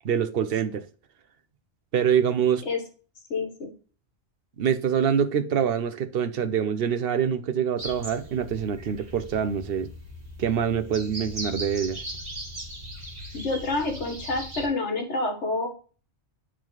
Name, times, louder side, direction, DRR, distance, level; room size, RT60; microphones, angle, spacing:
voice 1, 0.0-0.8 1.9-2.6 4.6-9.9 10.4-12.0, right 8 dB, 60° right, 0.9 m, -25 dB
voice 2, 3.3-3.7 13.3-15.7, left 3 dB, 80° left, 1.7 m, -28 dB
sound 1, 7.8-14.7, right 1 dB, 35° right, 1.5 m, -39 dB
8.9 x 3.7 x 3.1 m
omnidirectional pair, 1.2 m